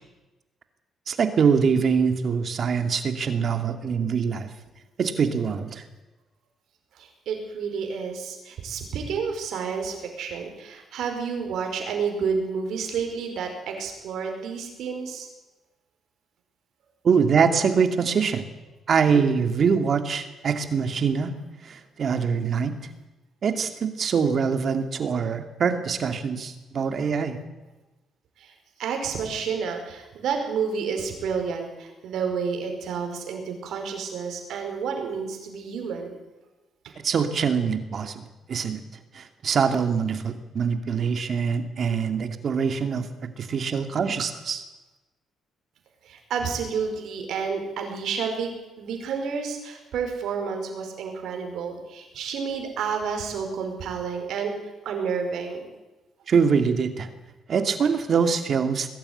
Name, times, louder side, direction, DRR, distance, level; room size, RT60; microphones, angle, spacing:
voice 1, 1.1-4.5 5.0-5.8 17.0-18.4 18.9-21.3 21.6-22.8 23.4-27.4 37.0-38.2 38.5-38.8 39.1-43.1 43.4-44.6 56.3-57.1 57.5-58.9, right 6 dB, 55° right, 7 dB, 2.5 m, -24 dB
voice 2, 7.0-15.3 27.0-27.1 28.4-28.5 28.8-36.1 46.0-48.5 48.8-54.5 54.8-55.7, right 6 dB, 75° right, 4 dB, 5.0 m, -30 dB
21.0 x 12.5 x 9.9 m, 1.1 s
cardioid pair, 90°, 0 cm